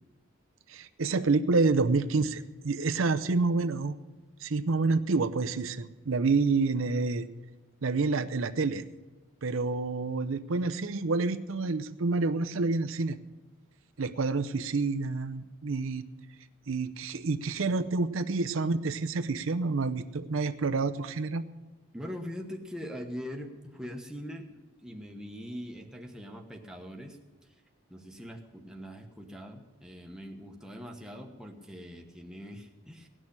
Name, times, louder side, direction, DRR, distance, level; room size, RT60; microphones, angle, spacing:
voice 1, 0.7-4.0 4.4-7.3 7.8-8.8 9.4-13.2 14.0-16.1 16.7-21.4, right 3 dB, 80° right, 9 dB, 0.6 m, -28 dB
voice 2, 21.9-27.2 27.9-33.1, equal, 5° right, 2 dB, 1.1 m, -42 dB
17.5 x 6.3 x 10.0 m, 1.2 s
head